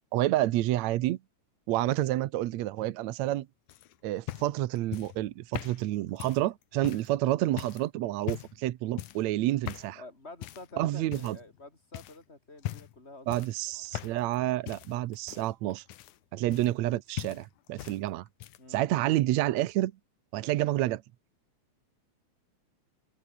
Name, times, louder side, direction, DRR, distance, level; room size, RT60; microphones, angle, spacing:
voice 1, 0.1-1.2 1.7-3.5 4.0-10.0 10.8-11.4 13.3-15.8 16.3-18.2 18.7-19.9 20.3-21.0, right 15 dB, 70° right, 2.0 m, -29 dB
sound 1, 3.7-7.1 7.6-7.9 8.2-8.6 9.0-9.3 9.7-10.0 10.4-10.7 11.1-11.6 11.9-12.2 12.6-13.0 13.3-14.4 14.7-16.9 17.2-18.0 18.3-18.8 19.7-19.8, left 14 dB, 85° left, 2.5 m, -40 dB
voice 2, 9.9-13.4 13.7-13.8 18.6-18.8, left 2 dB, 20° left, 5.3 m, -48 dB
omnidirectional pair, 3.5 m